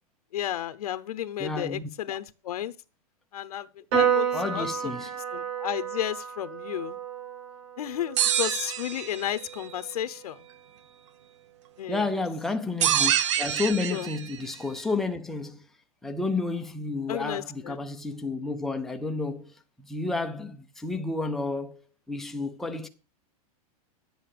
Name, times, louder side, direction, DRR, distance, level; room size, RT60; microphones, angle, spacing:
voice 1, 0.3-2.7 3.3-3.7 3.9-4.9 5.3-7.0 7.8-10.4 11.8-12.1 13.9-14.1 17.1-17.8, left 11 dB, 80° left, 0.9 m, -33 dB
voice 2, 1.4-2.2 4.3-5.1 11.9-15.6 16.0-22.9, left 3 dB, ahead, 0.6 m, -31 dB
Piano, 3.9-10.6, right 8 dB, 35° right, 4.6 m, -31 dB
sound 1, 8.2-9.4 12.8-14.4, right 10 dB, 50° right, 0.8 m, -26 dB
11.0 x 7.9 x 6.7 m
supercardioid pair, 175°, 20 cm